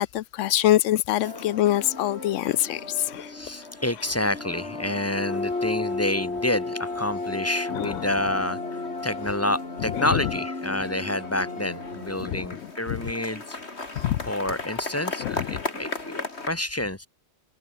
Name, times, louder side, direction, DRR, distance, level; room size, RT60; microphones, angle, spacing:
voice 1, 0.0-3.3 7.7-8.1 9.9-10.2 12.2-12.5 12.9-13.0 14.0-14.2 15.2-15.6, left 13 dB, 85° left, 1.0 m, -25 dB
sound 1, 1.2-16.5, left 3 dB, 60° left, 3.5 m, -34 dB
voice 2, 3.3-13.6 14.2-17.1, left 1 dB, 15° left, 1.0 m, -29 dB
omnidirectional pair, 1.2 m